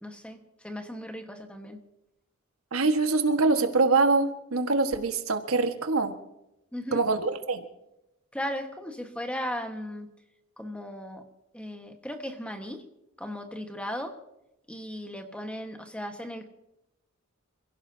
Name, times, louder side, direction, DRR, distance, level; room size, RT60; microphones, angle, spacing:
voice 1, 0.0-1.8 6.7-7.0 8.3-10.1 10.6-11.2 11.5-12.9 13.2-14.2 14.7-16.5, equal, 5° left, 5 dB, 1.5 m, -36 dB
voice 2, 2.7-6.1 6.9-7.6, right 3 dB, 75° right, 6 dB, 1.7 m, -24 dB
28.5 x 16.5 x 2.8 m, 0.89 s
head